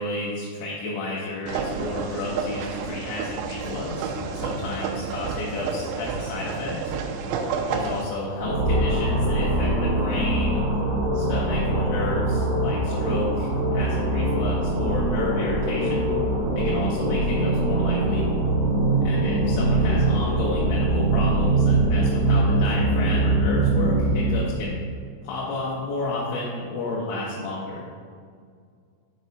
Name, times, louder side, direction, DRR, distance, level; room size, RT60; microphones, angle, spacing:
voice 1, 0.0-7.0 7.7-10.6 11.1-16.1 16.6-18.3 19.0-24.8 25.2-27.8, left 2 dB, 85° left, -6 dB, 3.8 m, -31 dB
sound 1, 1.5-8.0, right 5 dB, 90° right, 2.6 m, -30 dB
sound 2, 8.4-24.6, right 2 dB, 60° right, 2.2 m, -22 dB
7.2 x 6.2 x 4.1 m, 2.1 s
omnidirectional pair, 5.9 m